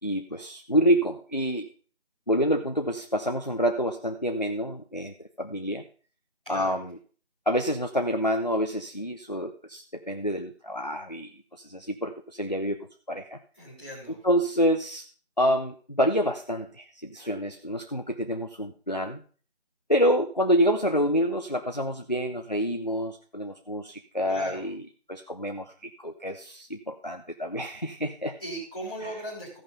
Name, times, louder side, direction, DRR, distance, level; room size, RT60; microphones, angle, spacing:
voice 1, 0.0-1.7 2.3-5.8 6.5-7.0 7.5-12.8 13.1-13.4 14.2-15.1 15.4-19.2 19.9-24.8 25.1-28.4 29.0-29.2, equal, 40° left, 6 dB, 0.5 m, -27 dB
voice 2, 6.5-6.8 13.5-14.2 24.3-24.7 28.4-29.6, right 1 dB, 5° left, -13 dB, 2.3 m, -38 dB
15.0 x 5.5 x 5.0 m, 0.41 s
figure-of-eight pair, 180°, 33 cm